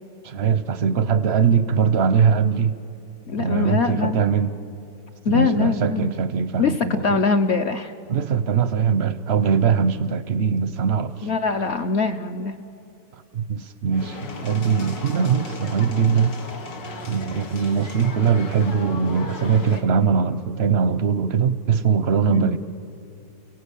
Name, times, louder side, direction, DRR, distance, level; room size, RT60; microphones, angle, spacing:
voice 1, 0.2-2.8 3.4-4.5 5.3-7.2 8.1-11.3 13.3-16.4 17.0-22.6, right 6 dB, 60° right, 13 dB, 0.7 m, -21 dB
voice 2, 3.3-4.3 5.2-6.1 6.6-7.9 11.2-12.6 22.3-22.5, left 4 dB, 55° left, 7 dB, 0.8 m, -23 dB
sound 1, 13.9-19.8, left 4 dB, 90° left, 2.3 m, -36 dB
29.5 x 17.0 x 8.4 m, 2.7 s
omnidirectional pair, 1.9 m